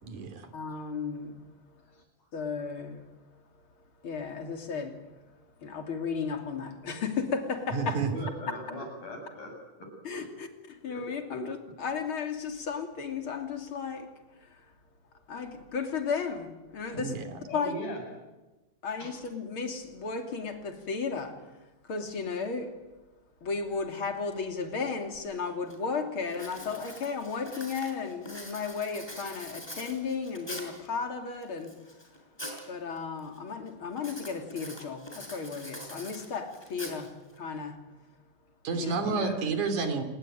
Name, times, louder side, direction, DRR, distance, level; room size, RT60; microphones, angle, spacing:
voice 1, 0.0-0.5 7.7-8.1 16.9-17.4 38.6-40.0, right 4 dB, 70° right, 4.3 m, -30 dB
voice 2, 0.5-1.4 2.3-3.1 4.0-5.1 5.6-8.0 10.0-14.1 14.4-14.6 15.3-17.2 17.5-17.7 18.8-21.4 21.9-22.8 23.4-31.8 32.7-37.8 38.7-38.9, left 5 dB, 40° left, 3.5 m, -34 dB
voice 3, 8.1-9.5 17.5-18.0 19.0-19.1 39.0-39.4, equal, 70° left, 8.9 m, -38 dB
Writing, 25.1-25.2 25.7-26.0 26.3-30.9 31.4-32.7 33.0-33.4 34.0-37.4, equal, 5° left, 5.6 m, -43 dB
28.0 x 20.5 x 9.1 m
omnidirectional pair, 3.7 m